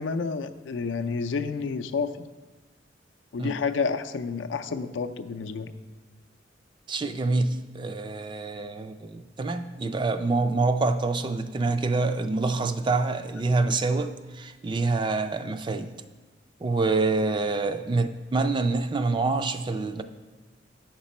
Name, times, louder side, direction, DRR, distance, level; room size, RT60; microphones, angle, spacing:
voice 1, 0.0-2.1 3.3-5.7, left 5 dB, 80° left, 8 dB, 0.4 m, -29 dB
voice 2, 6.9-15.9 16.6-20.0, right 3 dB, 25° right, 9 dB, 0.3 m, -26 dB
8.5 x 6.0 x 4.2 m, 1.3 s
head